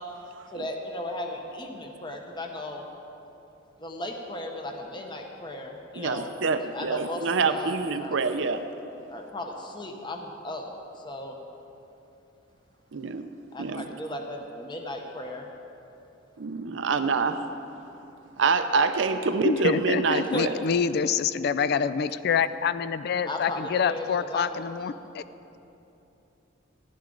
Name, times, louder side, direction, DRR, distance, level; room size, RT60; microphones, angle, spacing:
voice 1, 0.5-2.9 3.8-6.3 6.7-8.2 9.1-10.7 10.9-11.4 13.5-15.5 20.1-20.4 23.3-24.6, left 1 dB, 25° left, 2 dB, 0.9 m, -36 dB
voice 2, 6.0-8.6 12.9-13.3 13.6-13.9 16.4-17.4 18.4-20.5, right 4 dB, 65° right, 9 dB, 0.5 m, -26 dB
voice 3, 19.4-25.2, left 6 dB, 50° left, 14 dB, 0.3 m, -26 dB
15.0 x 11.5 x 3.9 m, 2.9 s
head